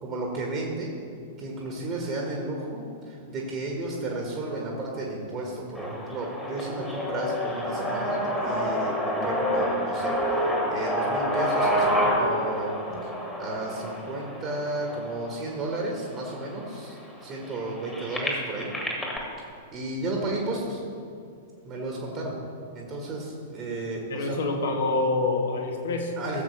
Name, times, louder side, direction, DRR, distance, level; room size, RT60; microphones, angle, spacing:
voice 1, 0.0-0.9 1.4-12.7 13.0-13.1 13.4-18.7 19.7-20.8 21.6-22.4 22.7-24.4 26.2-26.4, right 2 dB, 30° right, -1 dB, 1.5 m, -33 dB
sound 1, 5.7-15.7 16.4-16.5 16.7-19.2, equal, 10° left, 1.7 m, -28 dB
voice 2, 24.1-26.1, left 3 dB, 60° left, 2 dB, 1.5 m, -26 dB
15.0 x 7.2 x 3.3 m, 2.4 s
figure-of-eight pair, 100°, 0 cm